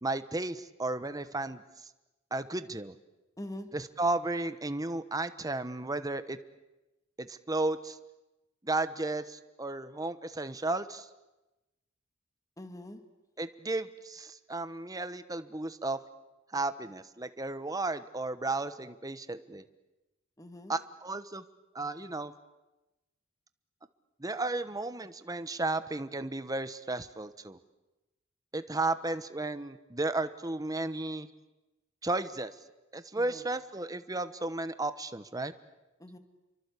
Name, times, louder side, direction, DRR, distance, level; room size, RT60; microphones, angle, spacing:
voice 1, 0.0-1.6 2.3-3.0 3.7-6.4 7.2-8.0 8.6-11.1 13.4-16.0 16.5-19.6 20.7-21.4 21.7-22.3 24.2-27.6 28.5-31.3 32.0-32.5 32.9-35.5, right 2 dB, 20° right, 11 dB, 1.1 m, -34 dB
voice 2, 3.4-3.7 12.6-13.0 20.4-20.7 33.2-33.4 36.0-36.2, left 1 dB, 15° left, 7 dB, 2.1 m, -43 dB
29.0 x 24.0 x 8.4 m, 1.0 s
head